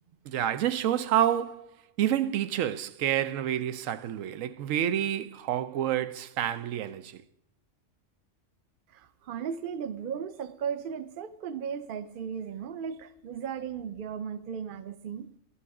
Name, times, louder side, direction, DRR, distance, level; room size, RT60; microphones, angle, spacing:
voice 1, 0.3-7.2, right 11 dB, 85° right, 1.0 m, -28 dB
voice 2, 8.9-15.3, right 7 dB, 50° right, 0.8 m, -36 dB
13.0 x 9.9 x 4.8 m
omnidirectional pair, 1.3 m